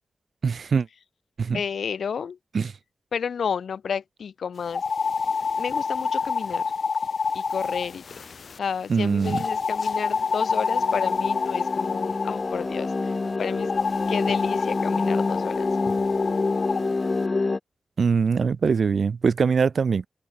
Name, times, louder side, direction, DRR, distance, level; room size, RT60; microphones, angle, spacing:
voice 1, 0.4-0.9 1.4-1.6 2.5-2.7 8.9-9.4 18.0-20.1, right 5 dB, 75° right, 0.6 m, -22 dB
voice 2, 1.5-2.4 3.1-4.8 5.6-6.7 7.3-8.0 8.3-13.7 14.1-15.8, left 6 dB, 85° left, 2.5 m, -31 dB
sound 1, 4.7-8.6 9.2-12.5 13.6-16.8, left 5 dB, 70° left, 1.8 m, -27 dB
sound 2, 9.8-17.6, left 3 dB, 45° left, 0.6 m, -27 dB
open air
cardioid pair, 55°, 0 cm